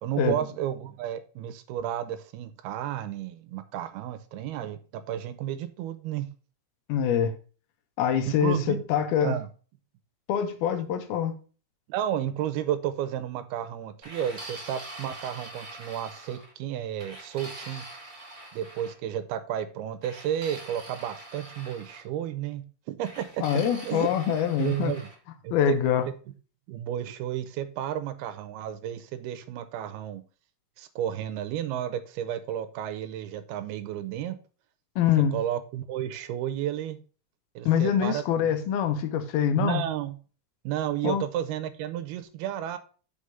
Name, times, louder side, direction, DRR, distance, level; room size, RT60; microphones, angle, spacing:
voice 1, 0.0-6.3 8.3-8.8 9.2-9.5 11.9-17.8 18.5-23.4 23.8-24.1 24.6-25.1 25.4-25.8 26.7-30.2 30.8-34.4 35.3-37.0 37.6-38.6 39.6-40.1 40.6-42.8, right 11 dB, 85° right, 2.7 m, -32 dB
voice 2, 6.9-7.3 8.0-9.4 10.3-11.4 23.4-24.9 25.5-26.1 35.0-35.4 37.7-39.8 41.0-41.2, left 8 dB, 75° left, 2.7 m, -25 dB
sound 1, 14.0-16.5 17.0-18.9 20.0-22.1 23.0-25.2, right 1 dB, 25° right, 1.2 m, -44 dB
6.1 x 5.0 x 6.8 m
omnidirectional pair, 4.6 m